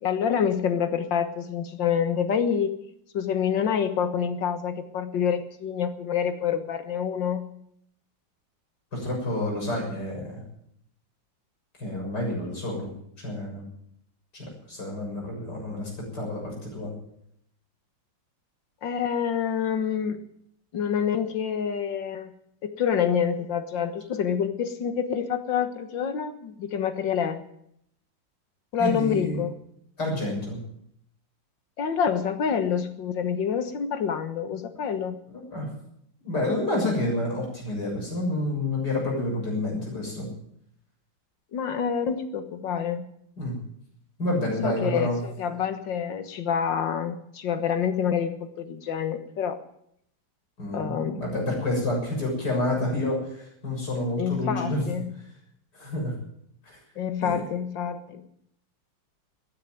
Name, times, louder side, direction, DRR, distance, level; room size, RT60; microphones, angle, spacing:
voice 1, 0.0-2.7 3.1-7.5 18.8-20.2 20.7-22.3 22.6-27.4 28.7-29.5 31.8-35.2 41.5-43.1 44.6-49.6 50.7-51.2 54.2-55.1 57.0-58.3, left 7 dB, 75° left, 9 dB, 2.1 m, -27 dB
voice 2, 8.9-10.4 11.8-12.9 13.2-13.7 14.3-16.9 28.8-29.4 30.0-30.6 35.3-35.7 36.2-40.3 43.4-43.6 44.2-45.2 50.6-54.8 55.7-56.1 56.7-56.8 57.2-57.4, left 1 dB, 60° left, -2 dB, 7.7 m, -29 dB
15.0 x 10.0 x 9.5 m, 0.73 s
omnidirectional pair, 2.0 m